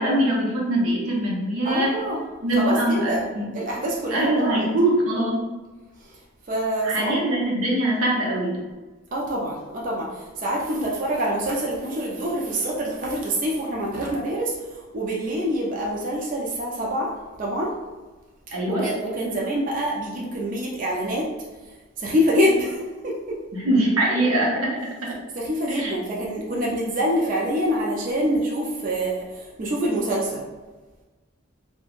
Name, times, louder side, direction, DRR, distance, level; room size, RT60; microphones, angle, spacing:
voice 1, 0.0-2.0 2.4-3.5 4.1-5.4 6.8-8.6 18.5-18.9 23.5-25.2 25.7-25.9, right 1 dB, 90° right, -3 dB, 0.7 m, -23 dB
voice 2, 1.6-2.2 2.5-3.3 3.5-4.7 6.0-6.2 6.5-7.2 9.1-17.1 17.4-17.7 18.7-21.3 22.0-23.4 25.4-30.4, equal, 40° right, -3 dB, 0.4 m, -26 dB
3.0 x 2.1 x 2.4 m, 1.2 s
head